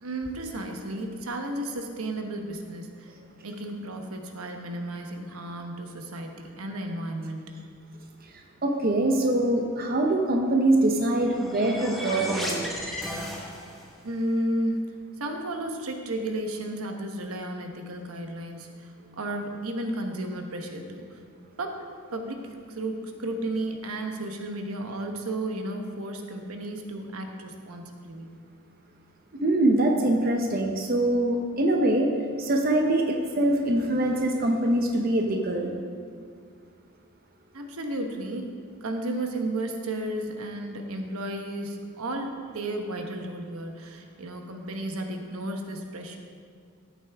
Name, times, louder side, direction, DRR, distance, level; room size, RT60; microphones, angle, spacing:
voice 1, 0.0-3.1 3.4-7.5 14.0-14.9 15.2-21.2 21.6-21.8 22.1-28.4 37.5-46.2, right 1 dB, 85° right, 3 dB, 1.1 m, -33 dB
voice 2, 8.6-12.7 29.4-32.1 32.4-35.7, right 1 dB, 45° right, 2 dB, 0.8 m, -23 dB
sound 1, 10.9-14.0, equal, ahead, 1.2 m, -34 dB
13.5 x 8.4 x 3.5 m, 2.1 s
head